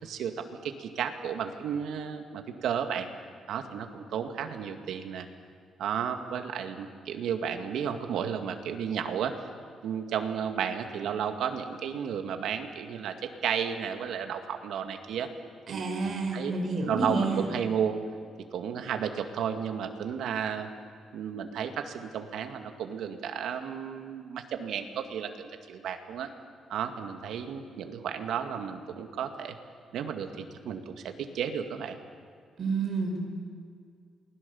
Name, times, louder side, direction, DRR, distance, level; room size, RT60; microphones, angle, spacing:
voice 1, 0.0-3.1 3.5-5.3 5.8-9.4 9.8-15.3 15.7-16.5 16.9-18.0 18.5-20.7 21.1-26.3 26.7-29.6 29.9-32.0, right 8 dB, 75° right, 6 dB, 2.1 m, -33 dB
voice 2, 15.7-17.5 32.6-33.2, right 3 dB, 35° right, 1 dB, 5.1 m, -29 dB
28.5 x 20.5 x 7.2 m, 2.1 s
cardioid pair, 160°, 0 cm